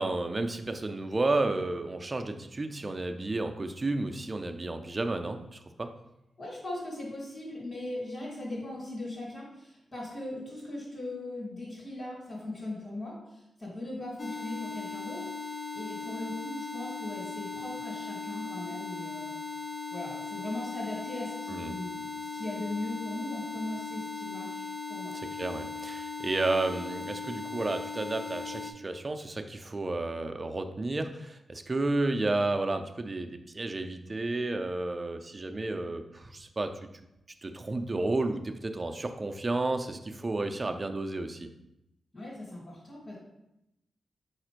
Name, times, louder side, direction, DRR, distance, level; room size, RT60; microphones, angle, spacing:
voice 1, 0.0-5.9 21.5-21.8 25.1-36.7 37.4-41.5, right 2 dB, 35° right, 6 dB, 0.4 m, -32 dB
voice 2, 6.4-19.3 19.9-25.2 42.1-43.2, left 2 dB, 40° left, -5 dB, 1.5 m, -39 dB
sound 1, 14.2-28.7, left 5 dB, 55° left, 0.5 m, -38 dB
4.2 x 2.5 x 4.4 m, 0.87 s
cardioid pair, 65°, 0 cm